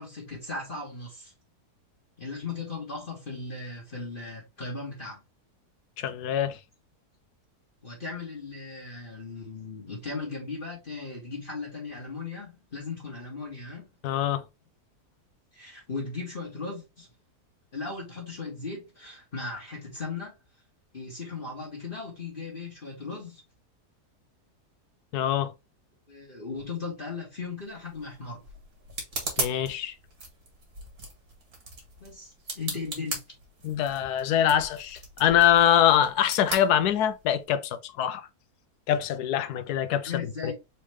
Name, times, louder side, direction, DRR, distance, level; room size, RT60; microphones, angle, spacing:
voice 1, 0.0-1.3 2.2-5.2 7.8-13.9 15.5-17.1 17.7-20.3 20.9-23.4 26.1-28.4 32.0-33.2 40.0-40.5, left 4 dB, 35° left, 1.6 m, -37 dB
voice 2, 6.0-6.6 14.0-14.4 25.1-25.5 29.4-29.9 33.6-38.3 38.9-40.1 40.4-40.5, left 10 dB, 80° left, 1.1 m, -24 dB
sound 1, 27.6-37.4, right 3 dB, 70° right, 2.3 m, -39 dB
4.3 x 3.1 x 3.3 m
omnidirectional pair, 1.7 m